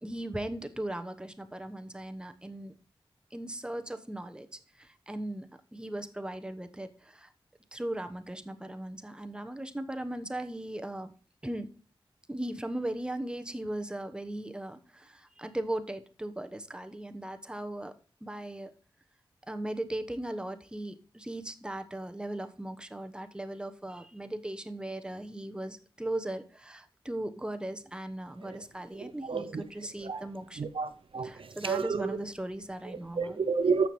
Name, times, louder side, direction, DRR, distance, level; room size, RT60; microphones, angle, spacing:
voice 1, 0.0-2.7 3.3-4.5 4.8-7.3 7.7-11.1 11.4-11.7 12.3-17.9 18.2-18.7 19.5-30.7 31.2-33.4, right 1 dB, 10° right, 1.0 m, -38 dB
voice 2, 29.3-29.6 30.1-30.2 30.6-31.3 31.6-32.0 33.2-33.9, right 5 dB, 70° right, 0.7 m, -29 dB
14.0 x 5.9 x 3.1 m
cardioid pair, 55°, 10 cm